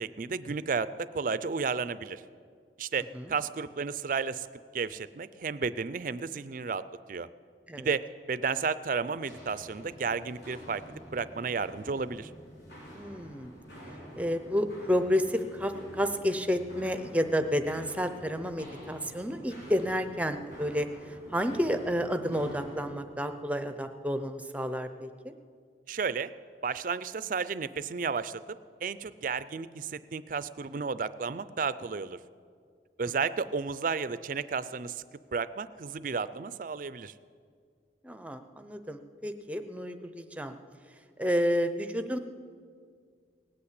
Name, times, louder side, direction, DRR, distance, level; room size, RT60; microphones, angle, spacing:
voice 1, 0.0-2.2 2.8-4.5 4.7-7.3 7.8-12.3 25.9-26.3 26.6-32.2 33.0-35.0 35.3-37.1, right 5 dB, 45° right, 15 dB, 0.4 m, -33 dB
Walk footsteps, 9.1-22.9, equal, 65° left, 4.7 m, -48 dB
voice 2, 12.9-13.5 14.1-25.3 38.0-40.5 41.2-42.2, equal, 10° right, 9 dB, 0.6 m, -30 dB
18.5 x 8.6 x 8.2 m, 2.1 s
head